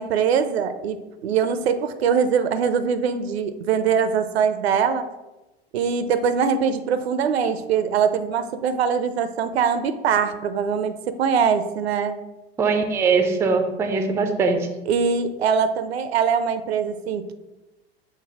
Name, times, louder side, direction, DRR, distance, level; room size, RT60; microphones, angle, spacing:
voice 1, 0.0-5.1 5.7-12.2 14.9-17.3, right 6 dB, 75° right, 10 dB, 0.5 m, -22 dB
voice 2, 12.6-14.7, right 4 dB, 10° right, 6 dB, 0.3 m, -21 dB
5.9 x 2.0 x 4.0 m, 1.0 s
hypercardioid pair, 90°, 31 cm